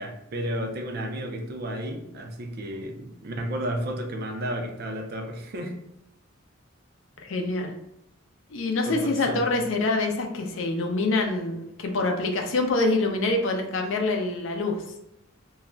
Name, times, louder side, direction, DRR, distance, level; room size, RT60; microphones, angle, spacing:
voice 1, 0.0-5.8 8.9-9.4, equal, 50° right, 2 dB, 0.4 m, -32 dB
voice 2, 7.2-7.7 8.5-14.8, left 2 dB, 65° left, 3 dB, 0.4 m, -25 dB
2.3 x 2.1 x 3.7 m, 0.82 s
head